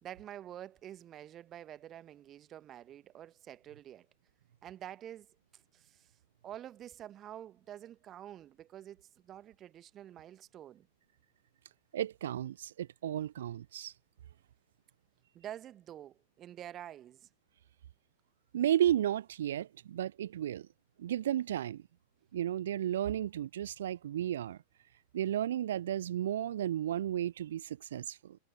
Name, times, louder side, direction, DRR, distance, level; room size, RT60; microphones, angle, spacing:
voice 1, 0.0-4.1 4.6-5.3 5.5-6.1 6.4-10.9 15.3-17.3, right 11 dB, 30° right, 1.6 m, -48 dB
voice 2, 11.9-13.9 18.5-20.7 21.0-21.8 22.3-24.6 25.1-28.4, right 11 dB, 60° right, 0.4 m, -33 dB
figure-of-eight pair, 90°, 0 cm